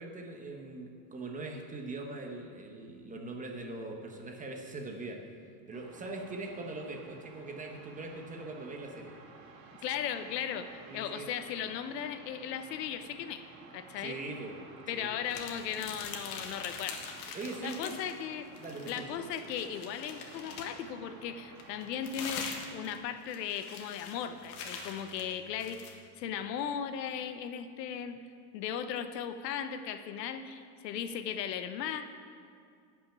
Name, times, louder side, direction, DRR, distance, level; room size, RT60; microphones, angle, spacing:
voice 1, 0.0-5.2 5.7-9.1 10.9-11.3 14.0-14.5 14.9-15.1 17.3-18.0 18.6-19.2, right 2 dB, 15° right, 2 dB, 1.2 m, -41 dB
sound 1, 5.7-23.1, right 4 dB, 90° right, 2.1 m, -54 dB
voice 2, 9.8-13.4 13.7-14.2 14.9-17.0 17.6-18.5 18.9-28.2 28.5-32.0, left 8 dB, 85° left, 10 dB, 0.9 m, -37 dB
sound 2, 15.3-18.2 18.5-20.9 21.6-26.0, left 5 dB, 65° left, 1.7 m, -43 dB
11.0 x 6.0 x 8.6 m, 2.3 s
supercardioid pair, 130°, 48 cm